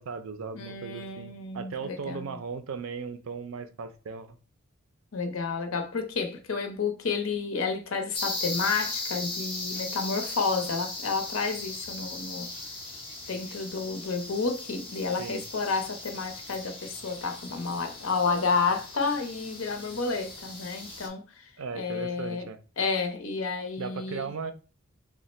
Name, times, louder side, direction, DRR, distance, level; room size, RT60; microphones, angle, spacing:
voice 1, 0.0-4.4 15.2-15.4 21.6-22.6 23.8-24.5, right 5 dB, 70° right, 0.5 m, -37 dB
voice 2, 0.5-2.4 5.1-12.5 13.3-22.5 22.8-24.3, left 4 dB, 70° left, 0.7 m, -31 dB
sound 1, 8.1-21.1, left 2 dB, 25° left, 0.9 m, -38 dB
3.6 x 2.1 x 4.1 m
head